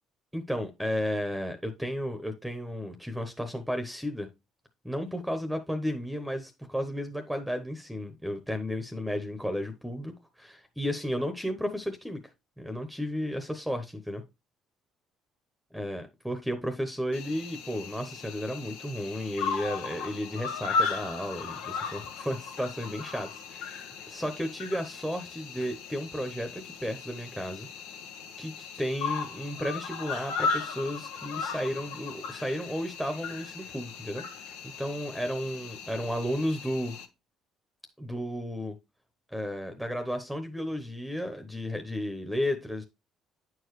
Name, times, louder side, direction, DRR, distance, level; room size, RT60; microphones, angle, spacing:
voice 1, 0.3-4.3 4.8-12.2 12.6-14.2 15.7-27.7 28.4-34.5 34.8-37.0 38.0-38.7 39.3-42.8, equal, ahead, 7 dB, 0.9 m, -33 dB
Cricket, 17.1-37.1, left 5 dB, 85° left, 0.8 m, -36 dB
8.8 x 4.6 x 3.1 m, 0.24 s
supercardioid pair, 70°, 0 cm